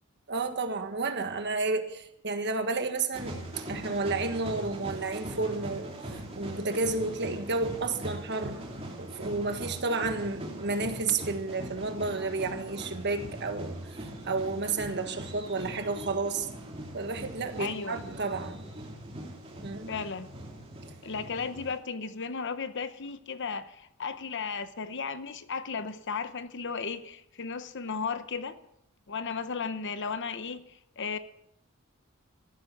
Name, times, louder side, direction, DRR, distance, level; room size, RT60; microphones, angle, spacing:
voice 1, 0.3-8.7 9.0-16.5 16.9-18.7 19.6-19.9, right 3 dB, 50° right, 1.5 m, -31 dB
sound 1, 3.1-21.8, right 1 dB, 30° right, 3.1 m, -41 dB
voice 2, 17.6-18.0 19.9-20.3 21.0-28.6 29.1-31.2, left 5 dB, 55° left, 0.9 m, -35 dB
14.0 x 12.0 x 6.0 m
head